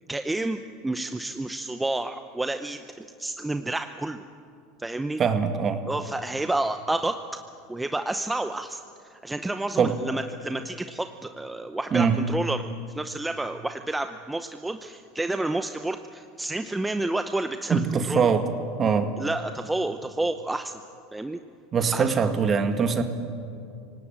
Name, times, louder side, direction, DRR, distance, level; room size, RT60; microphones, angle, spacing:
voice 1, 0.1-4.2 4.8-5.2 5.9-7.2 7.7-12.7 12.9-18.3 19.2-20.8 21.1-21.4 21.9-22.1, right 2 dB, 10° right, 8 dB, 0.8 m, -30 dB
voice 2, 5.2-5.8 9.8-9.9 11.9-12.2 17.7-18.5 18.8-19.1 21.7-23.0, right 6 dB, 30° right, 7 dB, 2.0 m, -22 dB
25.5 x 18.0 x 9.0 m, 2.5 s
supercardioid pair, 110°, 0 cm